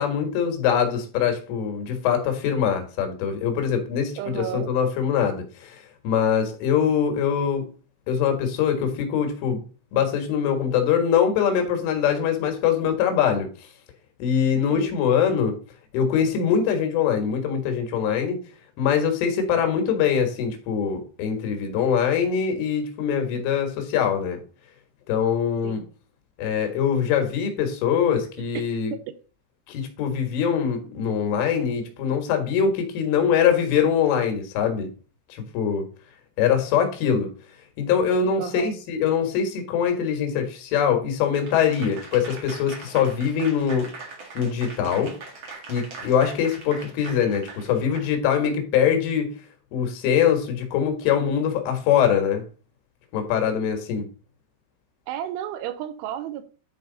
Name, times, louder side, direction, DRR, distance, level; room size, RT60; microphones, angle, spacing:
voice 1, 0.0-7.6 8.1-9.6 9.9-13.5 14.2-15.6 15.9-18.4 18.8-24.4 25.1-25.8 26.4-28.9 29.7-34.9 35.3-35.9 36.4-37.3 37.8-43.9 44.4-45.2 45.7-49.4 49.7-52.4 53.1-54.1, left 7 dB, 80° left, 5 dB, 4.2 m, -23 dB
voice 2, 4.2-4.7 14.7-15.0 25.6-25.9 28.5-28.6 38.4-38.8 55.1-56.4, right 11 dB, 85° right, 11 dB, 3.1 m, -32 dB
Applause / Crowd, 41.3-48.5, right 3 dB, 65° right, 1.2 m, -41 dB
11.0 x 4.6 x 4.0 m, 0.37 s
omnidirectional pair, 5.7 m